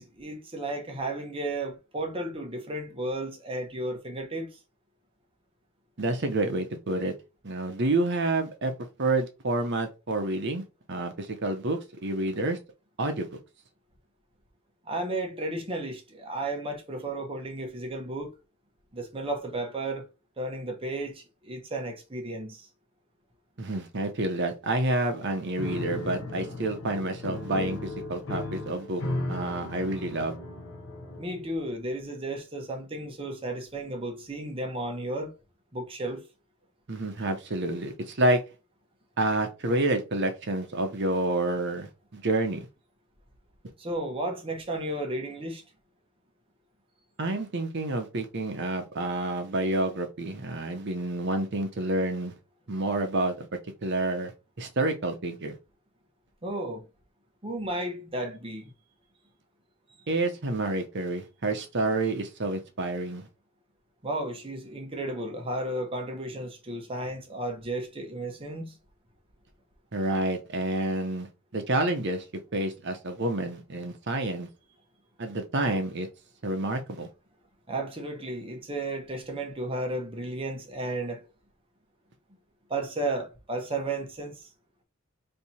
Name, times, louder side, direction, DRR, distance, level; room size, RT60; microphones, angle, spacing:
voice 1, 0.0-4.6 14.8-18.3 18.9-20.1 20.4-22.7 31.2-35.3 35.7-36.2 43.8-45.6 56.4-56.9 57.4-58.7 64.0-68.8 77.7-81.3 82.7-84.5, right 1 dB, 25° right, 0.9 m, -33 dB
voice 2, 6.0-7.1 7.4-8.7 9.0-10.6 10.9-12.6 13.0-13.3 23.6-29.0 29.3-30.4 36.9-38.4 39.2-42.7 47.2-52.3 52.7-53.5 53.8-54.3 54.6-55.6 60.1-63.3 69.9-72.2 72.5-74.5 75.2-76.1 76.4-77.1, right 2 dB, 55° right, 0.8 m, -28 dB
Piano, 25.6-31.5, left 2 dB, 65° left, 0.9 m, -36 dB
3.3 x 2.8 x 4.2 m
head